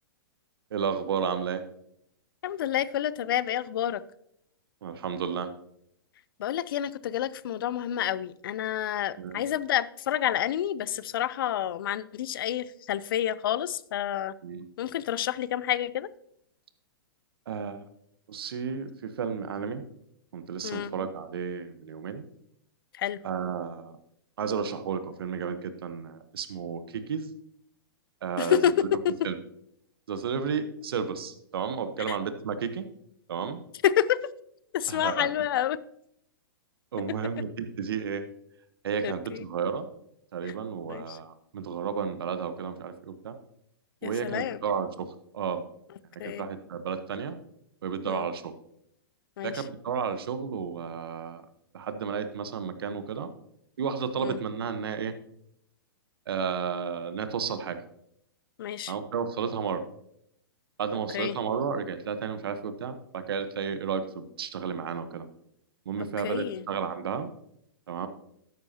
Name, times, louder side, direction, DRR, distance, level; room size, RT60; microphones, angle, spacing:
voice 1, 0.7-1.6 4.8-5.5 9.2-9.4 14.4-14.7 17.5-17.8 18.3-19.8 20.3-22.2 23.2-24.0 24.4-27.3 28.2-28.6 29.2-29.4 30.1-32.9 33.3-33.6 34.9-35.3 36.9-38.2 38.8-39.9 40.3-43.4 44.0-45.6 46.2-47.4 47.8-48.5 49.4-51.5 51.7-53.3 53.8-55.1 56.3-57.8 58.9-59.8 60.8-65.3 65.8-67.3 67.9-68.1, right 6 dB, 75° right, 10 dB, 1.1 m, -32 dB
voice 2, 2.4-4.0 6.4-14.3 14.8-16.1 20.6-20.9 22.9-23.2 28.4-28.7 32.1-32.2 33.8-34.2 34.7-35.8 39.0-39.4 40.4-40.5 40.9-41.2 44.0-44.6 46.2-46.5 48.0-48.3 49.4-49.6 54.2-54.4 58.6-58.9 61.1-61.4 66.2-66.6, left 11 dB, 65° left, 18 dB, 0.5 m, -29 dB
12.5 x 9.4 x 2.9 m, 0.75 s
hypercardioid pair, 125°, 13 cm